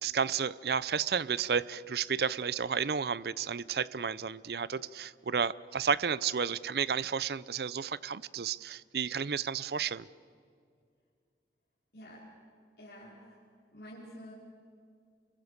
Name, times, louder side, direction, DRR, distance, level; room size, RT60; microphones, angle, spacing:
voice 1, 0.0-10.1, right 6 dB, 65° right, 19 dB, 0.5 m, -32 dB
voice 2, 11.9-12.3 12.8-13.4 13.7-14.3, equal, 70° left, -6 dB, 4.7 m, -49 dB
27.5 x 22.5 x 6.7 m, 2.3 s
head